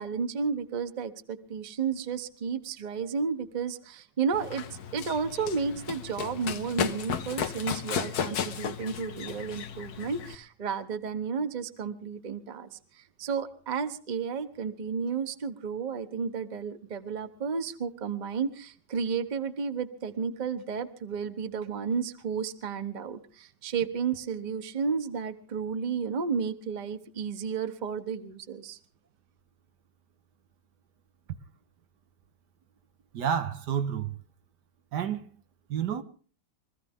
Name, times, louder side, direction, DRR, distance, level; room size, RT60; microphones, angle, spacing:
voice 1, 0.0-4.6 4.9-28.8, right 6 dB, 30° right, 1.0 m, -32 dB
Run, 4.3-10.4, left 8 dB, 65° left, 1.4 m, -34 dB
voice 2, 33.1-34.2 34.9-35.3 35.7-36.0, right 8 dB, 75° right, 1.6 m, -29 dB
23.5 x 15.0 x 3.6 m
omnidirectional pair, 1.9 m